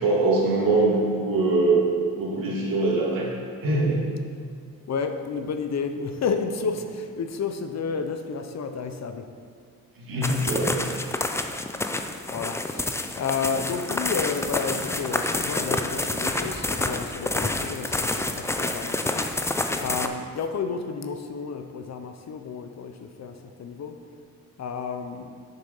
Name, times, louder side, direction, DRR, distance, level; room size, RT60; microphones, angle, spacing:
voice 1, 0.0-1.8 2.1-3.3 3.6-4.1 10.0-10.9, right 2 dB, 70° right, -4 dB, 2.2 m, -23 dB
voice 2, 4.9-9.3 12.3-24.0 24.6-25.4, left 5 dB, 50° left, 7 dB, 0.6 m, -31 dB
sound 1, 10.2-20.1, left 2 dB, 10° left, 0.4 m, -28 dB
6.8 x 6.7 x 5.4 m, 2.1 s
cardioid pair, 115°, 36 cm